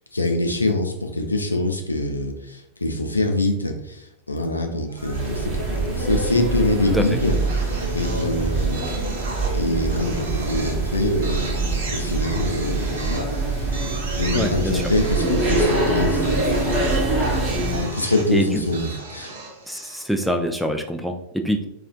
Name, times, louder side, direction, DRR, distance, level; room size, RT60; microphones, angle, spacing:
voice 1, 0.1-9.3 9.5-13.3 13.6-16.9 17.3-19.3, left 2 dB, 80° left, 3 dB, 0.4 m, -25 dB
sound 1, 4.9-5.7 7.2-20.2, right 2 dB, 60° right, 0.7 m, -36 dB
sound 2, 5.0-17.9, right 2 dB, 30° right, 0.9 m, -24 dB
voice 2, 14.3-14.8 18.3-18.5 19.7-21.7, equal, ahead, 5 dB, 0.3 m, -24 dB
4.3 x 2.4 x 2.5 m, 0.80 s
figure-of-eight pair, 90°, 0 cm